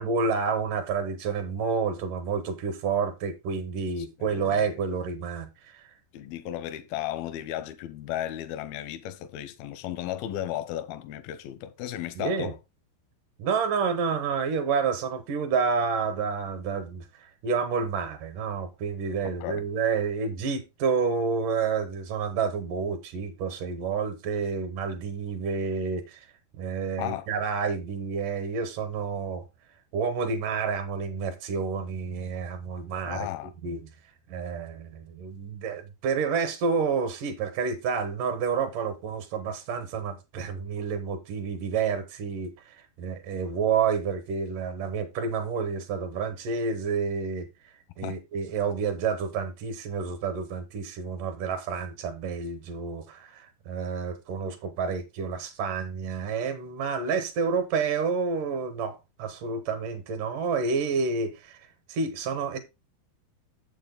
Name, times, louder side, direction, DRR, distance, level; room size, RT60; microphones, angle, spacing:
voice 1, 0.0-5.9 12.2-12.5 13.4-26.3 26.6-29.4 29.9-33.3 33.6-33.9 34.3-62.6, right 5 dB, 70° right, 2.5 m, -29 dB
voice 2, 4.2-4.7 6.1-12.6 19.2-19.6 27.0-27.3 33.0-33.5 48.0-48.2, left 12 dB, 85° left, 2.5 m, -34 dB
7.5 x 7.0 x 3.9 m
omnidirectional pair, 4.3 m